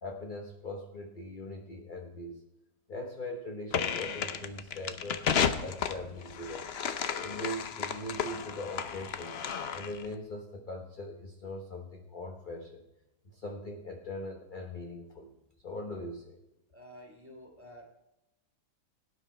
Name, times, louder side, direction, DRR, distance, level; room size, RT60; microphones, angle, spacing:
voice 1, 0.0-2.3 2.9-5.2 5.6-6.7 7.2-9.3 9.7-12.8 13.3-15.3 15.6-16.4, left 1 dB, 30° left, 2 dB, 1.0 m, -41 dB
sound 1, 3.7-10.1, left 7 dB, 75° left, 0.5 m, -33 dB
voice 2, 16.7-17.9, equal, 5° right, 1 dB, 2.5 m, -50 dB
17.5 x 9.8 x 4.4 m, 0.91 s
omnidirectional pair, 2.1 m